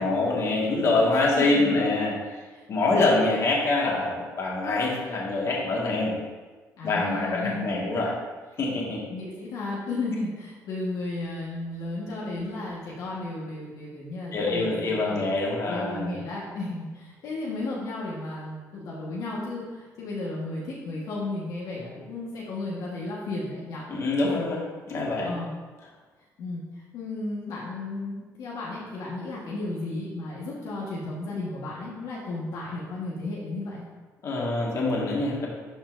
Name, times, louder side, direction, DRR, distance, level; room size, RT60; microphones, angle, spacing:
voice 1, 0.0-2.2 2.7-6.1 6.8-8.1 8.6-9.0 14.3-16.2 23.9-24.6 24.9-25.3 34.2-35.5, left 2 dB, 50° left, -3 dB, 1.8 m, -25 dB
voice 2, 1.1-1.8 2.5-2.6 2.9-3.0 6.8-7.7 9.1-15.3 15.6-23.9 24.3-24.4 25.2-25.6 26.4-26.6 26.9-33.8, left 2 dB, 80° left, -6 dB, 1.5 m, -34 dB
11.5 x 4.4 x 2.6 m, 1.3 s
cardioid pair, 110°, 6 cm